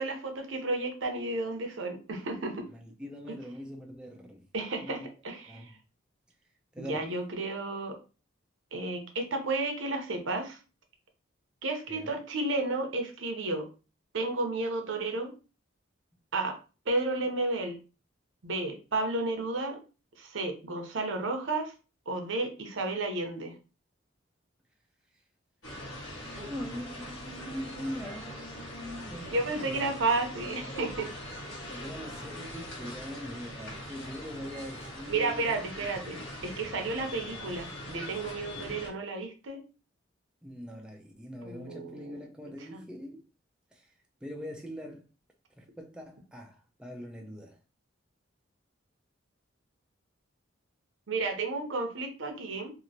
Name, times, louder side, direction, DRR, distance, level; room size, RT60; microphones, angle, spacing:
voice 1, 0.0-2.6 3.3-3.4 4.5-5.6 6.8-7.9 8.7-10.6 11.6-13.7 14.1-15.3 16.3-16.6 16.9-17.8 18.4-19.8 20.2-21.7 22.1-23.5 29.3-31.1 35.1-39.6 41.4-42.1 42.7-42.8 51.1-52.7, right 2 dB, 75° right, 0.7 m, -32 dB
voice 2, 2.7-4.4 4.8-5.1 5.5-5.8 6.7-7.1 11.9-12.1 26.1-29.8 31.7-35.9 40.4-43.3 43.7-43.9 44.2-45.1 45.6-47.6, equal, 5° right, 0.3 m, -42 dB
sound 1, 25.6-38.9, left 1 dB, 65° left, 1.3 m, -42 dB
2.9 x 2.4 x 2.7 m
head